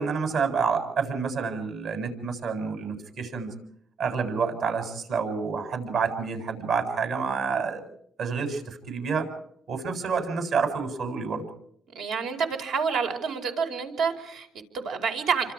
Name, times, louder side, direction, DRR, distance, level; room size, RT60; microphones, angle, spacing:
voice 1, 0.0-3.5 4.0-7.8 8.2-9.3 9.7-11.5, right 5 dB, 70° right, 6 dB, 7.5 m, -28 dB
voice 2, 11.9-15.5, right 6 dB, 85° right, 4 dB, 4.9 m, -28 dB
30.0 x 26.0 x 4.9 m, 0.66 s
cardioid pair, 90°, 0 cm